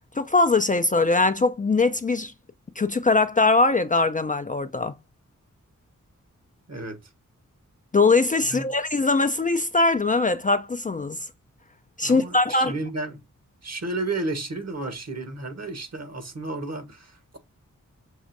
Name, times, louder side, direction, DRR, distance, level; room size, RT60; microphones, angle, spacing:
voice 1, 0.1-2.3 2.8-4.9 7.9-11.3 12.0-12.7, left 3 dB, 25° left, 0.4 m, -21 dB
voice 2, 6.7-7.0 8.5-8.6 12.0-13.2 13.6-17.4, right 2 dB, 55° right, 1.3 m, -32 dB
6.3 x 2.4 x 2.6 m
cardioid pair, 45°, 32 cm